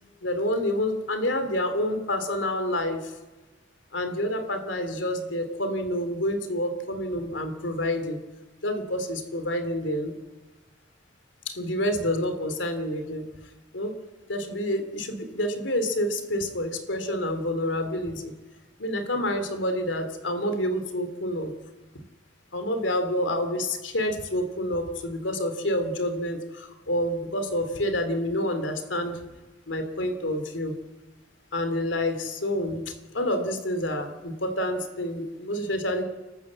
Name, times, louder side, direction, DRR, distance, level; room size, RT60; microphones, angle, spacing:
voice 1, 0.2-3.1 3.9-8.2 8.6-10.1 11.5-13.2 13.7-13.9 14.3-18.3 18.8-21.5 22.5-29.2 29.7-30.7 31.5-36.0, left 1 dB, 80° left, 8 dB, 2.9 m, -28 dB
29.5 x 13.0 x 7.6 m, 1.2 s
head